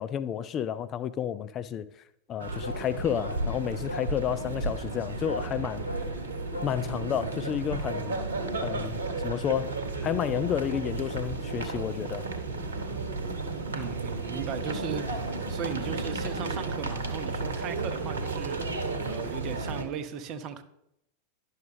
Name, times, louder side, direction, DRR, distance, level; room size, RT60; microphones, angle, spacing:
voice 1, 0.0-1.9 2.3-6.0 6.6-8.2 8.6-9.8 10.0-12.3, left 9 dB, 30° left, 0.3 m, -31 dB
sound 1, 2.4-19.8, right 3 dB, 70° right, 0.9 m, -33 dB
sound 2, 2.6-2.9 3.2-3.5 3.9-4.2 5.3-5.5 5.9-6.1 6.5-6.8, left 1 dB, 80° left, 0.6 m, -38 dB
voice 2, 13.7-20.6, right 7 dB, 40° right, 0.7 m, -37 dB
10.5 x 6.4 x 3.3 m
figure-of-eight pair, 90°, 0 cm